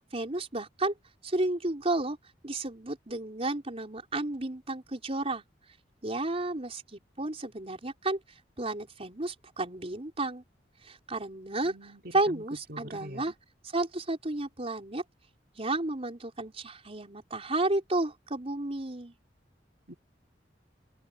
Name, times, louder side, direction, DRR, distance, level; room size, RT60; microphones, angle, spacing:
voice 1, 0.1-0.9 1.2-2.2 2.4-5.4 6.0-8.2 8.6-10.4 10.8-13.3 13.7-15.0 15.5-19.1, right 2 dB, 35° right, 4.5 m, -32 dB
voice 2, 11.6-12.0 12.3-12.4 12.7-13.2 19.9-20.0, equal, 65° right, 3.3 m, -44 dB
open air
head